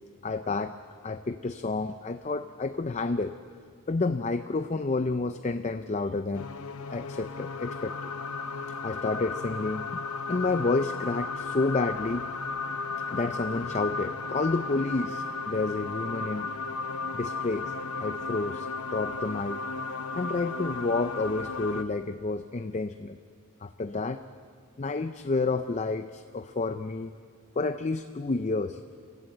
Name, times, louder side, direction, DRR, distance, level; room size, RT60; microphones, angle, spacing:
voice 1, 0.2-0.7 1.0-3.3 3.9-6.5 6.9-8.1 8.8-10.0 10.3-12.3 13.1-16.5 17.1-19.6 20.1-23.2 23.6-24.2 24.8-27.1 27.6-28.8, left 3 dB, 30° left, 10 dB, 0.5 m, -30 dB
sound 1, 6.3-21.8, left 4 dB, 80° left, 0.9 m, -35 dB
28.5 x 16.0 x 7.8 m, 2.2 s
head